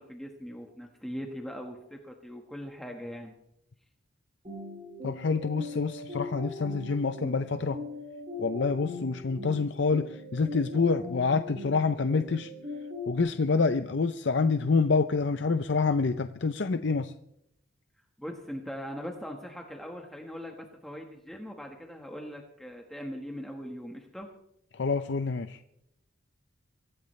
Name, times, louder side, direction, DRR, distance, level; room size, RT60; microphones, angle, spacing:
voice 1, 0.0-3.4 18.2-24.3, equal, ahead, 1 dB, 1.4 m, -40 dB
sound 1, 4.4-13.2, left 2 dB, 35° right, 5.7 m, -40 dB
voice 2, 5.0-7.8 8.4-12.5 13.1-17.1 24.7-25.6, left 4 dB, 60° left, 9 dB, 0.6 m, -27 dB
24.0 x 16.0 x 3.2 m, 0.79 s
head